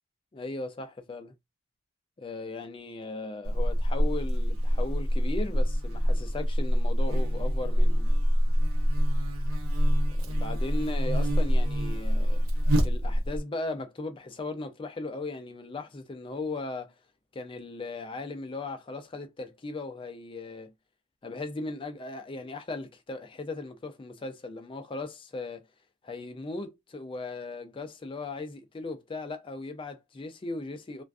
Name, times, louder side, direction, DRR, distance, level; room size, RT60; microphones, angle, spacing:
voice 1, 0.3-1.3 2.2-8.1 10.1-12.5 12.8-16.9 17.3-20.7 21.2-25.6 26.0-31.0, left 2 dB, 25° left, 0.4 m, -37 dB
Buzz, 3.4-13.4, equal, 80° right, 0.7 m, -25 dB
2.4 x 2.2 x 2.3 m
head